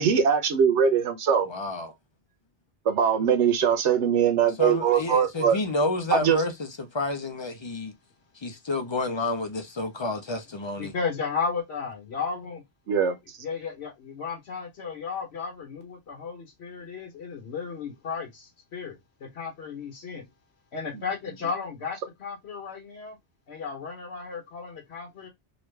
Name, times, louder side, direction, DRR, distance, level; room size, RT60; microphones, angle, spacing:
voice 1, 0.0-1.5 2.9-5.6 6.1-6.4 12.9-13.1, right 7 dB, 85° right, 1.1 m, -21 dB
voice 2, 1.4-1.9 4.6-7.9 8.4-10.9, left 2 dB, 35° left, 0.4 m, -29 dB
voice 3, 10.8-12.6 13.4-20.2 20.7-23.2 23.5-25.3, left 5 dB, 70° left, 1.1 m, -34 dB
3.1 x 2.3 x 3.2 m
omnidirectional pair, 1.2 m